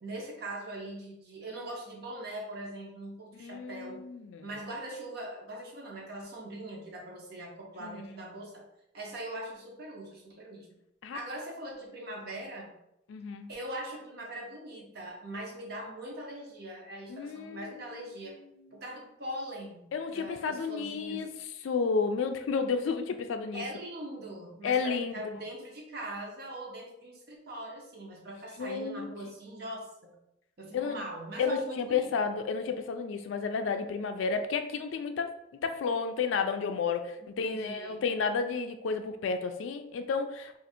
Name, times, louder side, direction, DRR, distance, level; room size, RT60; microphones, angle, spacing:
voice 1, 0.0-4.0 4.4-8.6 8.9-10.7 11.1-12.7 13.5-18.4 18.7-21.2 23.5-30.1 30.6-32.1 37.4-38.0, right 1 dB, 50° right, 0 dB, 0.8 m, -41 dB
voice 2, 3.4-4.5 7.8-8.0 11.0-11.2 13.1-13.5 17.1-17.9 19.9-23.6 24.6-25.5 28.6-29.1 30.7-31.0 31.4-35.4 35.6-40.6, left 5 dB, 75° left, 7 dB, 0.3 m, -32 dB
2.6 x 2.4 x 4.2 m, 0.81 s
head